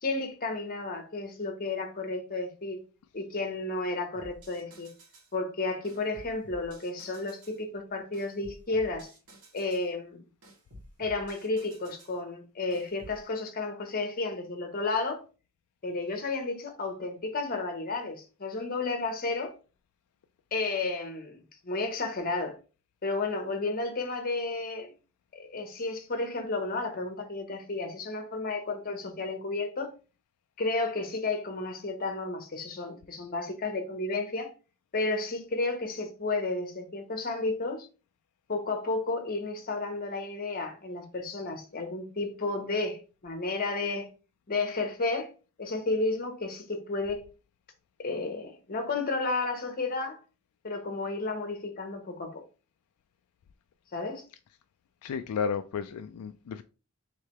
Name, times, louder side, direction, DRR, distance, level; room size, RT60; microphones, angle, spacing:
voice 1, 0.0-2.8 3.1-4.9 5.3-9.1 9.5-10.2 11.0-15.2 15.8-19.5 20.5-22.6 23.0-24.9 25.3-29.9 30.6-34.5 34.9-37.9 38.5-44.1 44.5-45.3 45.6-47.2 48.0-50.2 50.6-52.4 53.9-54.2, left 3 dB, 40° left, 1.0 m, -32 dB
sound 1, 4.1-5.3 5.8-7.6 8.1-9.9 10.4-12.2 12.7-13.2, equal, 70° right, 1.8 m, -52 dB
voice 2, 55.0-56.6, left 6 dB, 80° left, 0.3 m, -33 dB
3.3 x 3.3 x 4.3 m
head